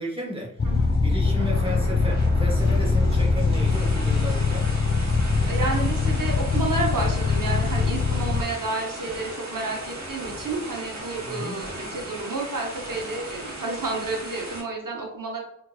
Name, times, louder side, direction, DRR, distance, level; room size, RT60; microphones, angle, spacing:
voice 1, 0.0-0.7 1.0-4.7 11.2-11.6, left 1 dB, 15° right, -1 dB, 1.0 m, -34 dB
sound 1, 0.6-8.4, left 4 dB, 35° left, 0.4 m, -22 dB
sound 2, 0.7-14.6, right 1 dB, 55° right, 1.1 m, -37 dB
voice 2, 5.5-15.4, right 3 dB, 80° right, 0 dB, 0.9 m, -30 dB
3.7 x 2.8 x 2.3 m, 0.77 s
wide cardioid pair, 40°, 32 cm